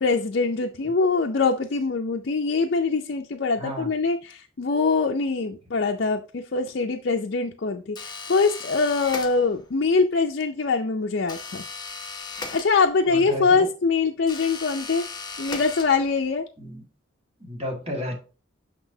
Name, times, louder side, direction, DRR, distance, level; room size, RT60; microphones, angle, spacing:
voice 1, 0.0-11.6 12.5-15.0 15.4-16.5, left 4 dB, 55° left, 3 dB, 0.5 m, -23 dB
voice 2, 3.6-3.9 13.1-13.7 16.6-16.8 17.4-18.1, equal, 30° right, 0 dB, 1.8 m, -32 dB
sound 1, 8.0-9.8 11.3-13.2 14.2-16.3, left 4 dB, 20° left, 0.9 m, -37 dB
6.1 x 6.0 x 2.7 m, 0.34 s
head